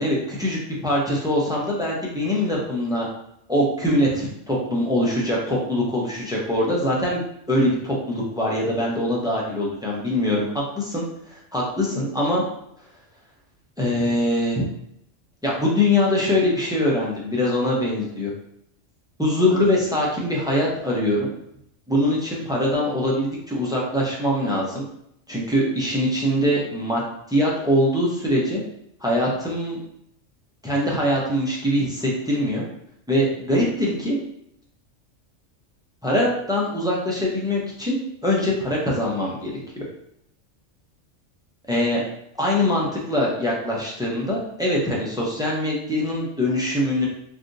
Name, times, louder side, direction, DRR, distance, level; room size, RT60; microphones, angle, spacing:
voice 1, 0.0-3.1 3.5-7.2 7.5-10.5 10.7-12.4 13.8-14.7 15.4-18.3 19.2-21.3 21.9-24.8 25.3-27.0 27.3-28.6 29.0-29.8 30.6-32.6 33.1-34.2 36.0-39.8 41.7-42.0 42.4-47.1, left 1 dB, 5° right, -4 dB, 0.4 m, -23 dB
3.5 x 2.5 x 2.6 m, 0.76 s
omnidirectional pair, 1.3 m